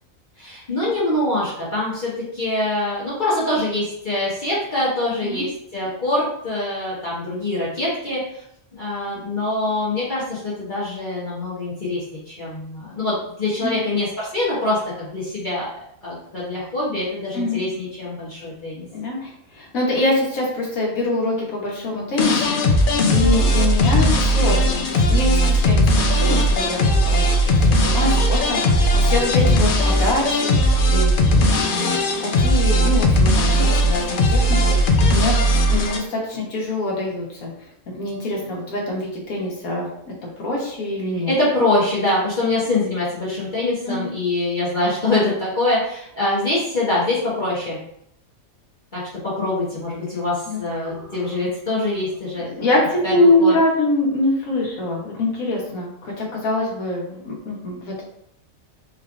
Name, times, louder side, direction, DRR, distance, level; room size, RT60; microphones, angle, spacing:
voice 1, 0.4-8.4 8.7-15.7 16.0-18.9 41.3-47.8 48.9-52.5 53.0-53.5, left 2 dB, 40° left, -8 dB, 1.1 m, -24 dB
voice 2, 17.3-17.6 18.9-22.6 23.1-26.8 27.0-35.3 35.7-37.5 37.9-39.9 40.4-41.3 43.8-44.0 50.5-50.6 52.4-58.0, left 2 dB, 90° left, -2 dB, 1.6 m, -24 dB
sound 1, 22.2-36.0, equal, 55° left, 0.6 m, -17 dB
4.5 x 3.2 x 2.5 m, 0.73 s
omnidirectional pair, 1.4 m